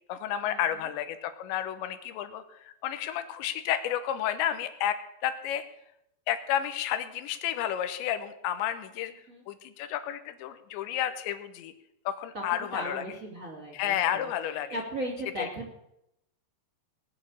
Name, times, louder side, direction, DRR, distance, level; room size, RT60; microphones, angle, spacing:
voice 1, 0.1-5.0 5.2-5.6 6.3-9.1 9.5-11.7 12.1-13.0 13.7-14.8 15.4-15.5, left 11 dB, 90° left, 10 dB, 3.3 m, -31 dB
voice 2, 12.3-14.3 14.7-15.8, right 1 dB, 20° right, 0 dB, 2.6 m, -37 dB
19.5 x 6.6 x 8.6 m, 0.80 s
omnidirectional pair, 5.1 m